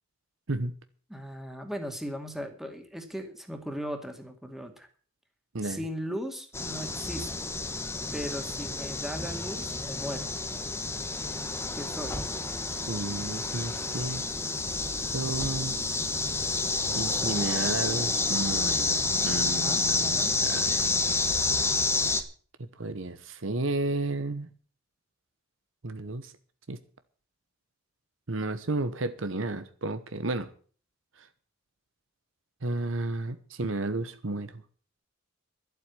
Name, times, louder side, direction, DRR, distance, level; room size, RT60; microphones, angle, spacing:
voice 1, 1.1-4.9 5.6-7.5 8.1-10.3 11.7-12.2 19.5-20.3, equal, ahead, 2.2 m, -38 dB
sound 1, 6.5-22.2, left 3 dB, 15° left, 1.3 m, -29 dB
voice 2, 12.9-14.3 15.1-15.8 16.9-20.9 22.6-24.5 25.8-26.3 26.7-26.8 28.3-30.5 31.2-31.3 32.6-34.6, right 2 dB, 75° right, 1.1 m, -32 dB
12.0 x 8.1 x 8.3 m
head